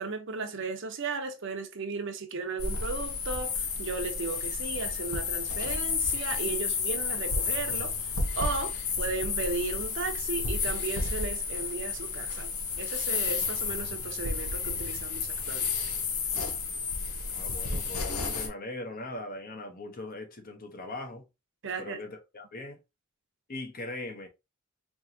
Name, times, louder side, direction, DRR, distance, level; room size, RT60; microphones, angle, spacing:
voice 1, 0.0-8.1 8.4-12.5 12.8-15.7 21.6-22.0, right 3 dB, 60° right, 0.8 m, -35 dB
sound 1, 2.6-18.5, left 5 dB, 90° left, 1.1 m, -31 dB
voice 2, 17.2-21.2 21.8-22.8 23.5-24.3, left 2 dB, 45° left, 0.9 m, -40 dB
4.6 x 3.0 x 2.7 m
head